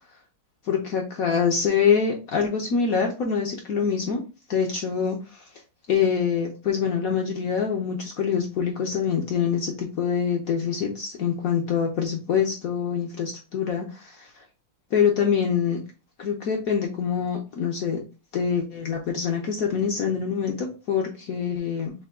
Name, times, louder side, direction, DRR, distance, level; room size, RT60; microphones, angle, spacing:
voice 1, 0.6-4.2 4.5-5.5 5.9-14.4 14.9-15.8 16.2-18.0 18.3-21.9, left 7 dB, 75° left, 1 dB, 0.8 m, -25 dB
6.7 x 2.2 x 3.6 m, 0.32 s
omnidirectional pair, 2.4 m